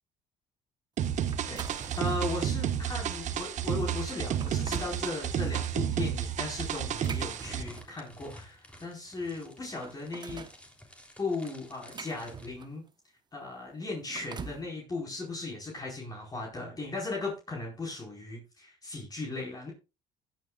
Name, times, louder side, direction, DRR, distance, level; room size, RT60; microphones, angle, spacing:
sound 1, 1.0-7.6, right 9 dB, 60° right, 1.5 m, -31 dB
sound 2, 1.3-2.4 2.9-3.1 3.7-3.8 4.2-5.0 6.7-8.1 9.1-9.2 9.5-10.6 11.4-12.9 13.9-14.7, right 5 dB, 30° right, 1.1 m, -44 dB
voice 1, 1.5-10.5 11.2-12.8 13.3-19.7, left 3 dB, 25° left, -2 dB, 4.6 m, -37 dB
sound 3, 6.9-12.5, left 1 dB, 10° left, 3.3 m, -52 dB
16.0 x 9.3 x 2.4 m, 0.28 s
supercardioid pair, 85°, 14 cm